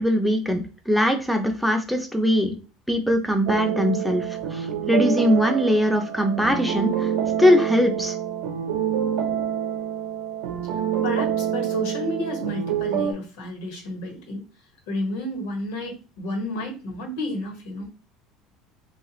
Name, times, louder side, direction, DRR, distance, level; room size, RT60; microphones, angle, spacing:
voice 1, 0.0-2.5 2.9-7.1 7.4-8.1, equal, ahead, 3 dB, 0.4 m, -21 dB
sound 1, 3.5-13.1, right 9 dB, 80° right, 0.6 m, -27 dB
voice 2, 10.7-14.4 14.9-17.9, left 1 dB, 90° left, 3 dB, 1.2 m, -31 dB
3.2 x 2.4 x 3.0 m, 0.34 s
cardioid pair, 165°, 0 cm